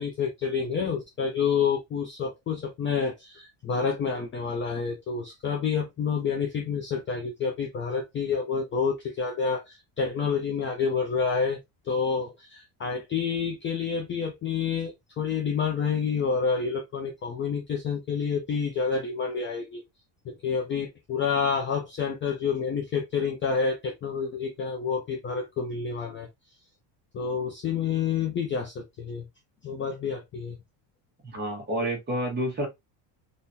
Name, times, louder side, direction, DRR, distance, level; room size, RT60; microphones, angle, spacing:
voice 1, 0.0-11.6 11.8-19.8 20.3-26.3 27.1-29.3 29.6-30.6, left 6 dB, 25° left, 0.4 m, -28 dB
voice 2, 31.2-32.7, right 1 dB, 20° right, 1.2 m, -29 dB
3.7 x 2.5 x 2.6 m
cardioid pair, 160°, 47 cm